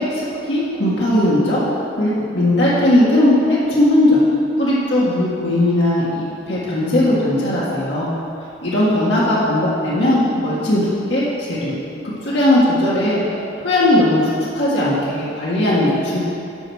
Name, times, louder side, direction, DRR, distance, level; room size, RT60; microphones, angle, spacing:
voice 1, 0.0-1.6 2.0-4.2 4.6-8.1 8.6-10.8 11.1-11.8 12.2-13.2 13.6-14.2 14.5-16.2, left 1 dB, 65° left, -8 dB, 1.7 m, -17 dB
8.9 x 5.8 x 6.3 m, 2.7 s
head